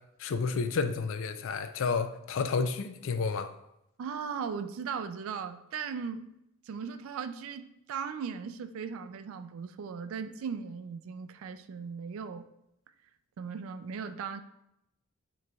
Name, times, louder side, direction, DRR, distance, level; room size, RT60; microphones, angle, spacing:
voice 1, 0.2-3.5, left 5 dB, 60° left, 10 dB, 0.4 m, -30 dB
voice 2, 4.0-6.2 6.7-12.5 13.4-14.4, right 6 dB, 60° right, 9 dB, 0.3 m, -38 dB
7.3 x 3.1 x 2.3 m, 0.82 s
head